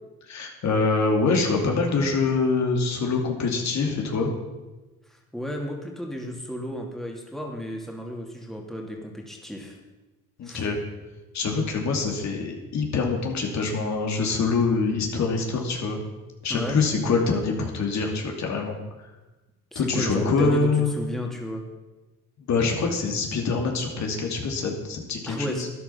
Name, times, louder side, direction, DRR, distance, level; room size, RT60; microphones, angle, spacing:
voice 1, 0.3-4.3 10.4-10.8 11.3-16.0 16.4-18.8 19.7-20.9 22.5-25.7, left 4 dB, 65° left, 2 dB, 2.5 m, -25 dB
voice 2, 5.1-9.8 10.4-10.7 16.5-16.8 19.7-21.6 25.3-25.7, equal, ahead, 0 dB, 2.5 m, -33 dB
12.5 x 10.5 x 5.7 m, 1.1 s
cardioid pair, 90°, 30 cm